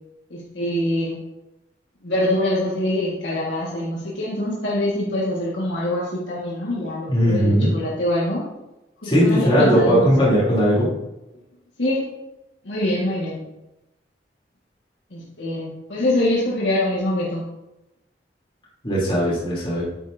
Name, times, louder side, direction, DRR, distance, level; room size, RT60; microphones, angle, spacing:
voice 1, 0.3-1.2 2.0-8.4 9.0-10.1 11.8-12.1 12.6-13.4 15.1-17.4, left 1 dB, 85° left, -5 dB, 1.7 m, -24 dB
voice 2, 7.1-7.7 9.0-10.9 18.8-19.8, equal, 30° left, -7 dB, 3.1 m, -18 dB
9.3 x 9.1 x 2.7 m, 0.96 s
head